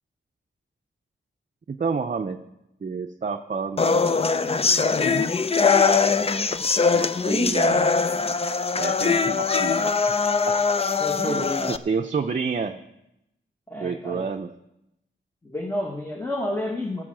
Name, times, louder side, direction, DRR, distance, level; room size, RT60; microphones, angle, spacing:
voice 1, 1.7-2.4 2.8-4.2 4.7-5.3 6.9-7.9 8.8-9.9 10.5-10.6 11.2-12.8 13.8-14.5, right 5 dB, 40° right, 4 dB, 0.6 m, -29 dB
sound 1, 3.8-11.8, left 5 dB, 30° left, 0.5 m, -22 dB
voice 2, 11.0-11.8 13.7-14.3 15.4-17.0, left 1 dB, 10° left, 1 dB, 1.2 m, -30 dB
15.5 x 6.2 x 7.5 m, 0.86 s
wide cardioid pair, 100°, 20 cm